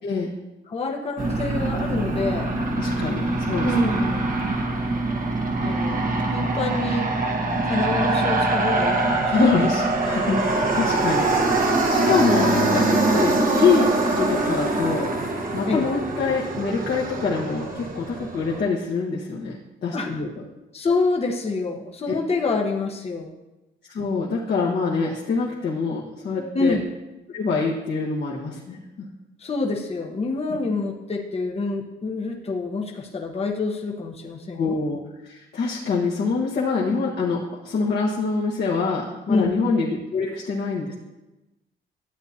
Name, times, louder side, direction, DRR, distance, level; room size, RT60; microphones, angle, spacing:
voice 1, 0.0-0.3 2.8-3.9 9.3-15.1 15.5-19.6 19.8-20.3 23.9-26.8 27.3-28.8 30.5-30.6 34.5-35.0 35.2-40.9, left 4 dB, 55° left, -4 dB, 1.4 m, -25 dB
voice 2, 0.7-2.5 3.6-4.4 5.6-7.1 7.6-9.3 15.7-15.9 19.9-20.2 20.7-23.3 26.4-26.9 29.4-34.8 39.3-39.6, left 3 dB, 30° left, 1 dB, 1.0 m, -27 dB
Aircraft, 1.2-18.6, right 2 dB, 45° right, 1.3 m, -23 dB
11.5 x 8.1 x 2.8 m, 1.0 s
cardioid pair, 90°, 20 cm